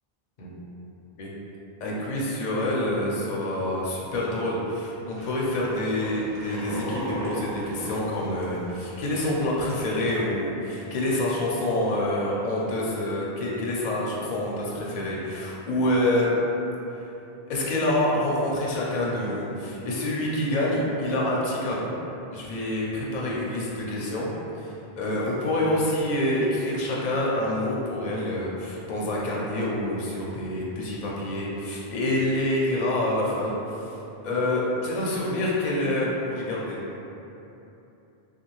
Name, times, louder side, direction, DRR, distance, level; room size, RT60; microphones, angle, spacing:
voice 1, 1.8-16.3 17.5-21.9 22.3-24.3 24.5-34.0 34.2-36.8, left 1 dB, 55° left, -4 dB, 0.6 m, -27 dB
sound 1, 5.2-9.0 9.3-9.4 9.7-10.1, right 1 dB, 70° right, 0.9 m, -35 dB
2.6 x 2.3 x 3.0 m, 2.9 s
omnidirectional pair, 1.0 m